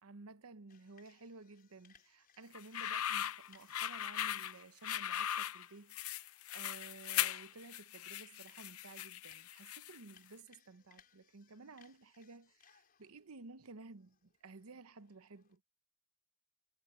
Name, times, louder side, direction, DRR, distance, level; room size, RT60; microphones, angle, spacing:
voice 1, 0.0-15.6, right 3 dB, 90° right, 0.9 m, -55 dB
sound 1, 0.7-15.6, left 8 dB, 45° left, 5.3 m, -69 dB
sound 2, 2.5-10.1, left 11 dB, 80° left, 0.7 m, -39 dB
head